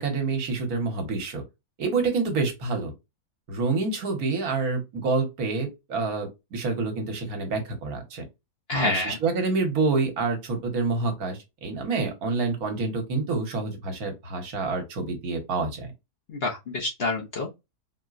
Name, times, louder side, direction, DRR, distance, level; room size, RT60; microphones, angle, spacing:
voice 1, 0.0-1.4 1.8-2.9 3.5-8.2 8.7-15.9, right 3 dB, 70° right, 1.5 m, -27 dB
voice 2, 8.7-9.2 16.3-17.6, left 2 dB, 50° left, 0.8 m, -28 dB
4.3 x 2.1 x 2.4 m
omnidirectional pair, 1.6 m